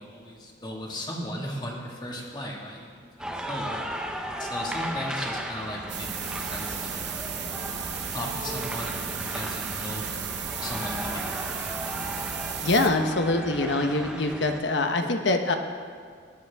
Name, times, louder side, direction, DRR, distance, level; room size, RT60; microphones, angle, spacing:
voice 1, 0.0-7.1 8.1-11.7, left 1 dB, 25° left, -2 dB, 1.8 m, -37 dB
sound 1, 3.2-14.6, equal, 5° right, 0.7 m, -36 dB
sound 2, 5.9-12.9, right 7 dB, 60° right, 1.1 m, -34 dB
voice 2, 12.6-15.6, left 2 dB, 65° left, 5 dB, 1.0 m, -24 dB
18.0 x 11.0 x 3.6 m, 2.1 s
head